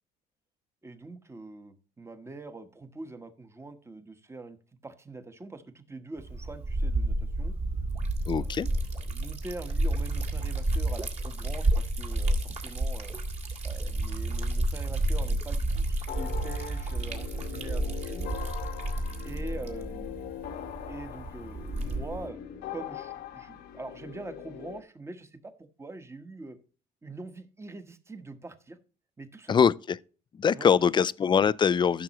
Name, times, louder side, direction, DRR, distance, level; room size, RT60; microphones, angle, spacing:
voice 1, 0.8-4.6 4.8-7.6 8.3-8.8 9.1-13.2 13.6-18.3 19.2-20.3 20.9-22.4 22.7-26.6 27.0-28.8 29.2-29.6 30.5-30.8, right 3 dB, 15° right, 1.2 m, -43 dB
Liquid, 6.2-22.3, right 2 dB, 40° right, 2.1 m, -30 dB
voice 2, 8.3-8.7 29.5-30.0 30.3-32.0, left 7 dB, 25° left, 0.4 m, -23 dB
sound 1, 16.1-24.8, left 11 dB, 70° left, 0.9 m, -41 dB
14.0 x 6.1 x 3.0 m
cardioid pair, 110°, 17 cm